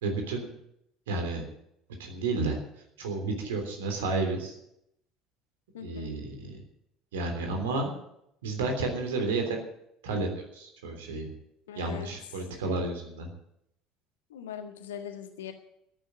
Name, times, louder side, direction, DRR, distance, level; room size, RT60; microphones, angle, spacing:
voice 1, 0.0-0.5 1.1-1.4 2.0-2.6 3.0-4.6 5.8-6.6 7.1-7.9 8.4-9.6 10.0-11.3 11.7-13.3, right 3 dB, 65° right, 4 dB, 3.3 m, -31 dB
voice 2, 5.7-6.1 11.7-12.1 14.3-15.5, left 8 dB, 70° left, 6 dB, 1.7 m, -41 dB
14.0 x 9.1 x 9.0 m, 0.76 s
figure-of-eight pair, 60°, 0 cm